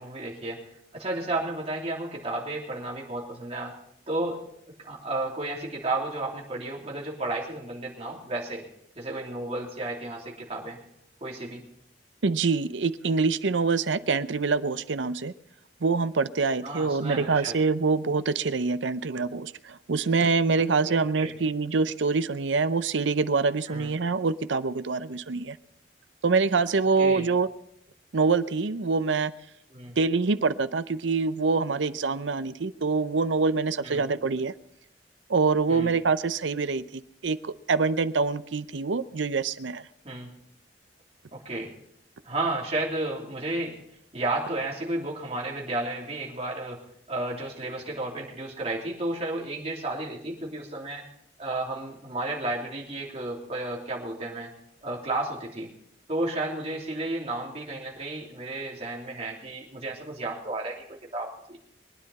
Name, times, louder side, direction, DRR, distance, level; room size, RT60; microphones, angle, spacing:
voice 1, 0.0-3.7 4.1-4.4 4.8-8.6 8.9-10.8 11.2-11.6 16.6-17.5 20.8-21.3 23.7-23.9 27.0-27.3 29.7-29.9 33.8-34.1 35.7-36.0 40.0-40.3 41.3-41.7 42.2-43.8 44.1-46.8 47.1-51.0 51.4-54.5 54.8-55.7 56.1-60.8 61.1-61.6, right 2 dB, 35° right, -3 dB, 3.3 m, -32 dB
voice 2, 12.2-15.3 15.8-25.6 26.2-27.5 28.1-29.3 30.0-34.5 35.3-39.8, right 4 dB, 85° right, 13 dB, 0.7 m, -25 dB
23.0 x 10.0 x 4.2 m, 0.73 s
head